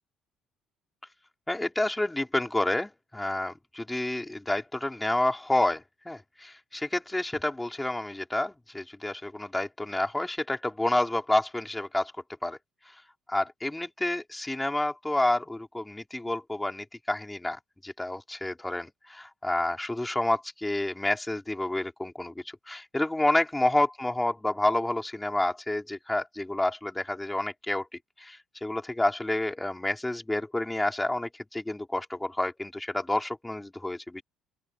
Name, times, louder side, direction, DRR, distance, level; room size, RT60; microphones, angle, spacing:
voice 1, 1.5-12.1 12.4-12.6 12.9-13.0 13.3-27.9 28.2-34.2, left 1 dB, 10° left, 4.9 m, -29 dB
open air
supercardioid pair, 85°, 0 cm